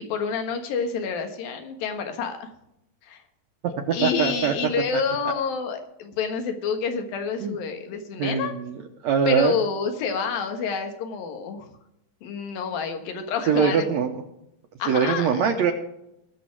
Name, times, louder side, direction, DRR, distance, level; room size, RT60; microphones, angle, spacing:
voice 1, 0.0-2.5 3.0-3.2 3.9-8.5 9.3-11.7 12.2-13.9 14.8-15.5, left 6 dB, 80° left, 6 dB, 3.3 m, -28 dB
voice 2, 3.9-4.5 4.9-5.0 7.4-7.6 8.2-8.8 9.0-9.6 13.5-14.2 14.9-15.7, right 7 dB, 70° right, 4 dB, 1.8 m, -22 dB
20.0 x 6.7 x 4.7 m, 0.83 s
omnidirectional pair, 4.1 m